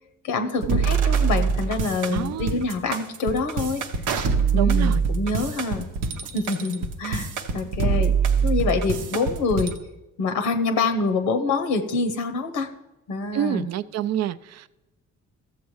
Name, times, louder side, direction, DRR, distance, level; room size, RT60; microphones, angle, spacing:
voice 1, 0.2-3.9 4.5-5.9 6.3-8.2 8.4-9.7 10.2-12.7 13.1-13.7, left 3 dB, 85° left, 0.8 m, -26 dB
sound 1, 0.6-9.7, right 5 dB, 85° right, 0.8 m, -24 dB
voice 2, 2.1-2.6 4.5-5.0 13.3-14.7, right 10 dB, 60° right, 0.4 m, -28 dB
14.0 x 7.2 x 3.1 m
cardioid pair, 90°, 30 cm